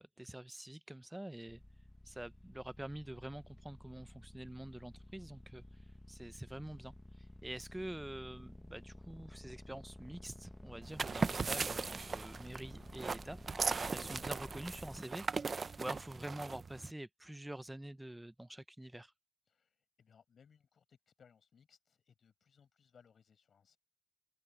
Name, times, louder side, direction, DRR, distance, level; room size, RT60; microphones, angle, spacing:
voice 1, 0.0-1.6 2.0-5.6 6.1-6.9 7.4-13.4 13.9-15.2 15.8-19.1, right 1 dB, 10° right, 0.7 m, -46 dB
sound 1, 1.5-15.0, left 1 dB, 10° left, 1.5 m, -53 dB
sound 2, 10.8-16.9, right 4 dB, 50° right, 0.7 m, -38 dB
voice 2, 19.5-23.8, left 7 dB, 70° left, 6.2 m, -67 dB
cardioid pair, 60°, 0 cm